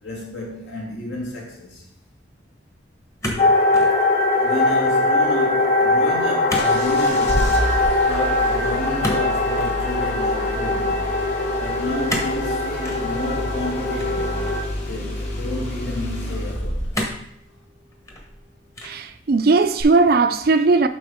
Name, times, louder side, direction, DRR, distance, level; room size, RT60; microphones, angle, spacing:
voice 1, 0.0-1.8 4.4-11.1 11.6-14.4 14.9-17.0, left 1 dB, 75° left, 2.3 m, -31 dB
Bedroom Stapler in operation, 3.2-4.0 4.3-4.8 6.5-6.8 7.0-7.3 9.0-9.8 12.1-12.4 12.8-13.0 14.0-14.7 15.4-15.5 16.9-17.3 17.9-18.4 18.7-19.1, equal, 15° left, 1.0 m, -29 dB
sound 1, 3.4-14.6, left 2 dB, 50° left, 1.6 m, -21 dB
Engine starting, 6.5-17.2 19.8-19.9, equal, 35° left, 1.9 m, -29 dB
voice 2, 18.8-20.9, right 3 dB, 50° right, 0.4 m, -17 dB
7.8 x 5.7 x 3.6 m
head